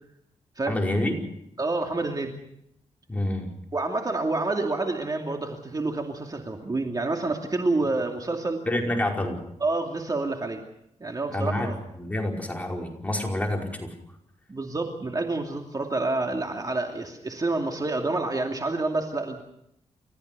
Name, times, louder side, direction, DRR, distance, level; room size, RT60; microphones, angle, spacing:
voice 1, 0.7-1.2 3.1-3.5 8.7-9.4 11.3-13.9, left 1 dB, 10° left, 0 dB, 5.1 m, -28 dB
voice 2, 1.6-2.3 3.7-8.6 9.6-10.6 11.0-11.8 14.5-19.4, right 2 dB, 30° right, 2 dB, 2.6 m, -28 dB
30.0 x 15.0 x 6.9 m, 0.77 s
cardioid pair, 95°, 12 cm